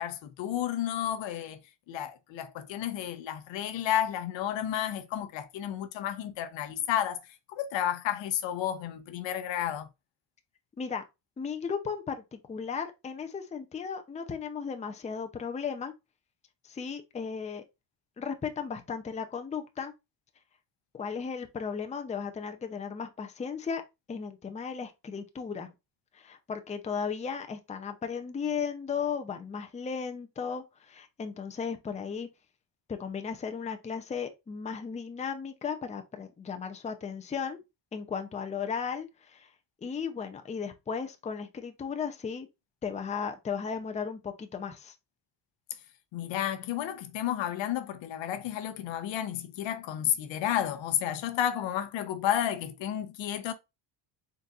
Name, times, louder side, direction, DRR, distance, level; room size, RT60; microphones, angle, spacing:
voice 1, 0.0-1.6 1.9-7.2 7.5-9.9 46.1-53.5, left 10 dB, 75° left, 0.8 m, -31 dB
voice 2, 11.4-15.9 16.6-17.6 18.2-19.9 20.9-23.8 24.1-25.7 26.1-32.3 32.9-37.6 37.9-39.5 39.8-42.5 42.8-44.9, left 6 dB, 15° left, 0.5 m, -35 dB
4.0 x 3.9 x 2.4 m
cardioid pair, 115°, 45 cm